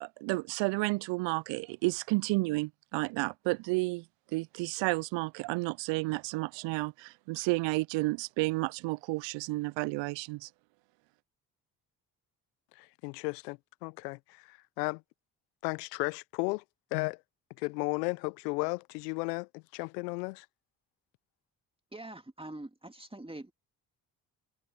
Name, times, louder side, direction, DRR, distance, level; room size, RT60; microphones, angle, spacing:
voice 1, 0.0-4.0 4.3-10.5, right 24 dB, 65° right, 0.7 m, -31 dB
voice 2, 12.7-15.0 15.6-16.6 16.9-17.2 17.6-20.5, left 28 dB, 80° left, 0.9 m, -34 dB
voice 3, 21.9-23.5, right 1 dB, 10° right, 2.4 m, -44 dB
hypercardioid pair, 45°, 47 cm